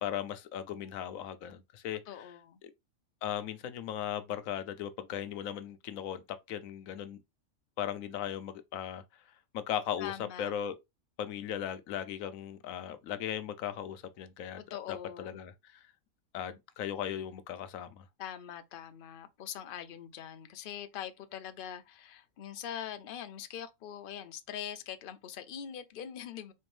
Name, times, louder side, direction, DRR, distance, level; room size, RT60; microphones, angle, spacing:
voice 1, 0.0-2.2 2.6-2.7 3.2-7.2 7.8-9.0 9.5-10.8 11.2-14.6 14.9-15.9 16.3-18.0, left 10 dB, 75° left, 1.0 m, -37 dB
voice 2, 2.1-2.6 10.0-10.5 14.7-15.4 18.2-26.5, left 9 dB, 60° left, 0.6 m, -43 dB
4.3 x 2.5 x 3.2 m
omnidirectional pair, 1.5 m